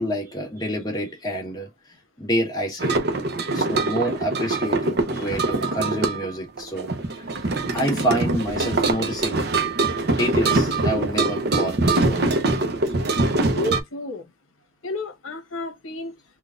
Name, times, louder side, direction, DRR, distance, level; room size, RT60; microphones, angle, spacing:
voice 1, 0.0-1.7 2.2-3.0 3.5-9.5 9.9-12.3, equal, 20° left, 1.4 m, -28 dB
sound 1, 2.8-13.8, right 2 dB, 50° right, 0.6 m, -23 dB
voice 2, 13.6-14.2 14.8-16.1, left 1 dB, 70° left, 1.1 m, -30 dB
3.8 x 2.3 x 2.4 m
head